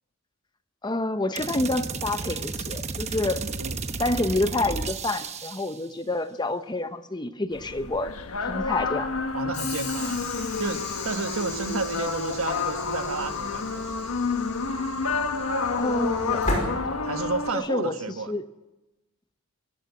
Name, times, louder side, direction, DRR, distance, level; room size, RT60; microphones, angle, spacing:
voice 1, 0.8-3.4 4.0-8.1 8.4-9.1 15.8-16.4 17.5-18.0 18.3-18.5, left 2 dB, 20° left, 10 dB, 0.8 m, -28 dB
sound 1, 1.3-5.8, right 4 dB, 30° right, 1.0 m, -33 dB
voice 2, 3.2-3.8 9.3-10.2 10.6-14.0 17.0-18.3, right 3 dB, 75° right, 8 dB, 1.3 m, -32 dB
sound 2, 7.5-17.5, left 4 dB, 80° left, 1.3 m, -29 dB
Train / Sliding door, 9.5-17.5, left 2 dB, 35° left, 5.4 m, -35 dB
24.0 x 14.0 x 8.2 m, 1.0 s
head